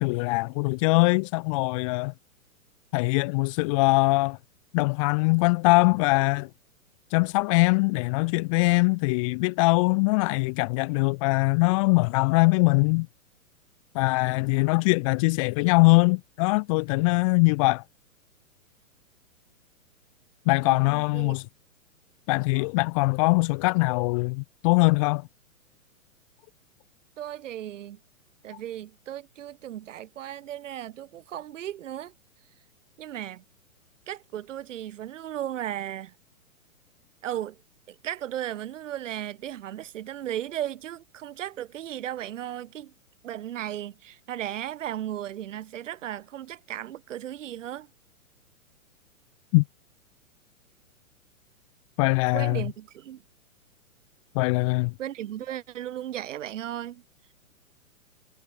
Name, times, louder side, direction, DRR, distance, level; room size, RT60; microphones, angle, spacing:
voice 1, 0.0-2.1 2.9-4.4 4.7-6.5 7.1-13.1 13.9-17.8 20.5-21.4 22.3-25.2 49.5-49.6 52.0-52.6 54.3-54.9, left 27 dB, 25° left, 0.5 m, -22 dB
voice 2, 20.6-21.4 27.2-28.0 28.4-32.1 33.0-33.4 34.1-36.1 37.2-37.6 37.9-42.9 43.2-47.9 52.3-53.2 55.0-57.0, right 11 dB, 60° right, 5.8 m, -35 dB
hypercardioid pair, 120°, 42 cm